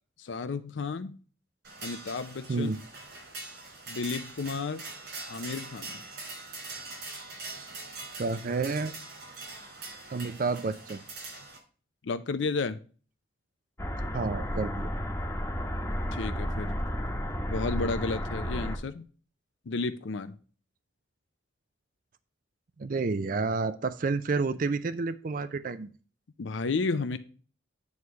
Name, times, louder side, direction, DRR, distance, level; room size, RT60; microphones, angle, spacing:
voice 1, 0.2-1.2 1.8-2.7 3.9-4.8 5.3-6.0 12.0-12.8 16.1-16.7 17.5-19.0 19.7-20.4 26.4-27.2, left 4 dB, 70° left, 11 dB, 0.5 m, -32 dB
sound 1, 1.6-11.6, right 3 dB, 60° right, 4.2 m, -43 dB
voice 2, 2.5-2.8 8.2-8.9 10.1-11.0 14.1-14.9 22.8-25.9, right 4 dB, 45° right, 12 dB, 0.4 m, -30 dB
sound 2, 13.8-18.8, equal, 15° left, 1.0 m, -32 dB
9.5 x 3.2 x 6.8 m, 0.39 s
head